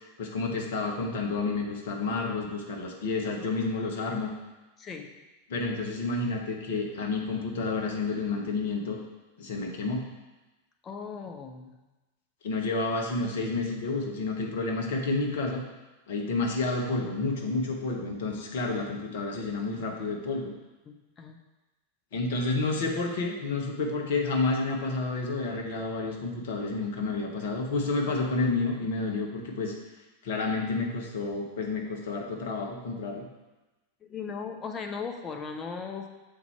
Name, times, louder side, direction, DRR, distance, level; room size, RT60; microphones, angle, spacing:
voice 1, 0.2-4.3 5.5-9.0 9.4-10.0 12.4-15.6 16.1-20.5 22.1-29.7 30.2-33.3, left 3 dB, 55° left, 1 dB, 1.1 m, -30 dB
voice 2, 4.8-5.1 10.8-11.7 20.9-21.4 34.0-36.1, left 5 dB, 25° left, 4 dB, 0.8 m, -38 dB
7.2 x 4.2 x 4.4 m, 1.1 s
figure-of-eight pair, 90°, 0 cm